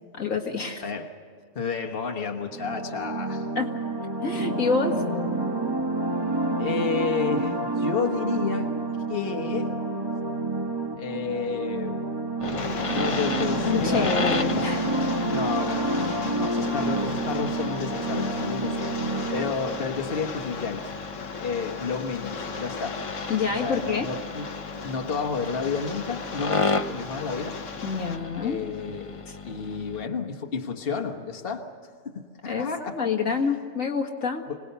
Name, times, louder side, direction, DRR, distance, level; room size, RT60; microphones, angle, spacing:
voice 1, 0.1-0.8 3.6-3.7 4.2-5.0 13.7-14.9 16.3-17.0 23.3-24.1 27.8-28.6 29.3-29.4 32.5-32.7 32.9-34.4, left 5 dB, 90° left, 2 dB, 2.3 m, -27 dB
voice 2, 0.8-1.1 1.5-3.5 6.6-8.7 9.1-9.7 10.9-12.2 12.9-14.6 15.2-18.9 19.3-20.9 21.4-23.0 23.5-24.5 24.8-27.6 28.4-31.7 32.0-33.4 34.5-34.6, left 5 dB, 45° left, 4 dB, 1.5 m, -31 dB
sound 1, 2.5-19.9, right 2 dB, 20° right, 1.4 m, -29 dB
Rain, 12.4-28.2, left 5 dB, 75° left, 1.5 m, -37 dB
sound 2, 12.4-30.0, left 3 dB, 30° left, 0.9 m, -34 dB
25.5 x 19.5 x 6.8 m, 2.1 s
omnidirectional pair, 1.3 m